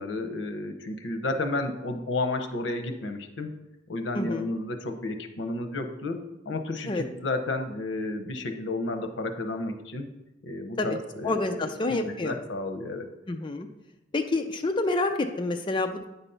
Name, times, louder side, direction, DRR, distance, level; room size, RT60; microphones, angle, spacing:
voice 1, 0.0-3.6 3.9-10.1 10.4-13.1, left 2 dB, 80° left, 6 dB, 0.8 m, -32 dB
voice 2, 4.1-4.5 6.9-7.0 10.8-11.0 11.2-12.4 13.3-13.7 14.1-16.1, left 2 dB, 25° left, 4 dB, 0.4 m, -28 dB
9.0 x 4.1 x 5.6 m, 0.96 s
head